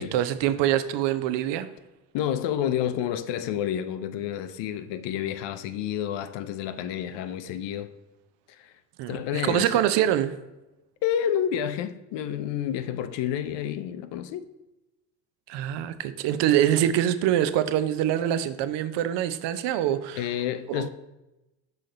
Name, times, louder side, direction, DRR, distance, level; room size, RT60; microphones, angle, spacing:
voice 1, 0.0-1.7 9.0-10.3 15.5-20.3 20.7-20.9, right 11 dB, 60° right, 0.6 m, -25 dB
voice 2, 2.1-7.9 8.5-8.7 9.1-9.7 11.0-14.4 20.2-20.9, left 10 dB, 60° left, 0.6 m, -29 dB
5.8 x 5.0 x 3.8 m
hypercardioid pair, 65°, 49 cm